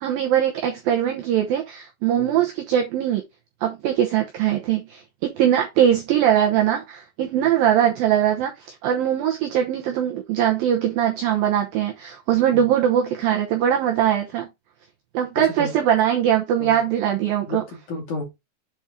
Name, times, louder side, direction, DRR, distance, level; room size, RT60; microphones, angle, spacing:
voice 1, 0.0-3.2 3.6-5.0 5.3-14.5 15.1-17.6, right 10 dB, 90° right, 2.0 m, -21 dB
voice 2, 17.4-18.2, left 3 dB, 45° left, 3.4 m, -32 dB
8.1 x 4.4 x 3.7 m
omnidirectional pair, 5.5 m